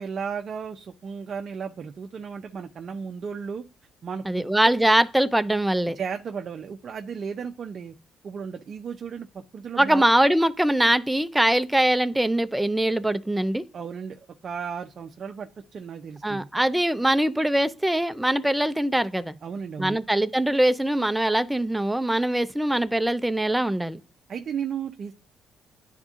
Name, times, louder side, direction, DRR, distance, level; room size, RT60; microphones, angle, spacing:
voice 1, 0.0-3.7 4.0-4.5 5.9-7.9 8.2-10.1 13.7-16.5 19.4-20.0 24.3-25.1, right 6 dB, 55° right, 0.5 m, -34 dB
voice 2, 4.3-6.0 9.8-13.6 16.2-19.4 19.8-24.0, right 1 dB, 5° right, 0.5 m, -22 dB
10.5 x 3.6 x 2.4 m
cardioid pair, 90°, 0 cm